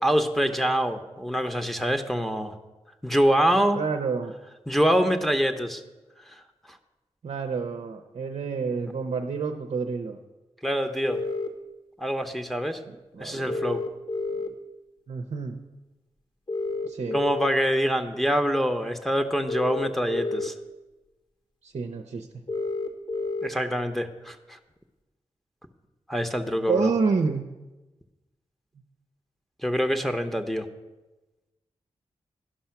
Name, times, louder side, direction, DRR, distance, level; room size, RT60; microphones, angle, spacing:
voice 1, 0.0-2.6 3.0-3.8 4.7-5.8 6.3-6.4 10.6-11.2 12.0-12.8 13.2-13.8 17.1-20.5 23.4-24.6 26.1-26.9 29.6-30.7, equal, ahead, 4 dB, 0.9 m, -25 dB
voice 2, 3.7-4.3 7.2-10.2 12.9-13.6 14.3-14.4 15.1-15.6 16.8-17.2 21.6-22.3 26.7-27.5, right 5 dB, 65° right, 5 dB, 0.7 m, -29 dB
sound 1, 11.1-11.5 13.5-14.5 16.5-17.5 19.5-20.5 22.5-23.5, left 3 dB, 45° left, 1.2 m, -29 dB
11.5 x 5.6 x 5.8 m, 1.1 s
cardioid pair, 45°, 12 cm